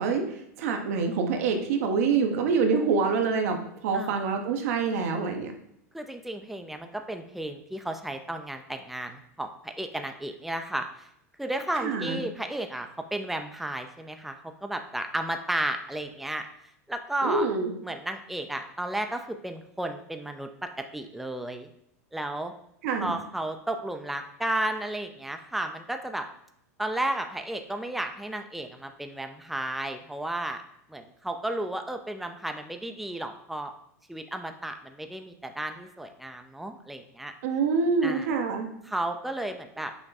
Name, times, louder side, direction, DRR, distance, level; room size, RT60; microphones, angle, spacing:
voice 1, 0.0-5.5 11.8-12.2 17.2-17.7 22.8-23.2 37.4-38.7, right 5 dB, 70° right, 4 dB, 0.8 m, -26 dB
voice 2, 5.9-11.1 11.4-14.4 14.6-16.5 16.9-17.5 17.8-21.7 22.1-22.5 23.0-26.3 26.8-30.6 30.9-33.7 34.1-37.3 38.0-38.3 38.9-39.9, right 1 dB, ahead, 6 dB, 0.4 m, -33 dB
6.0 x 2.2 x 4.1 m, 0.75 s
hypercardioid pair, 105°, 8 cm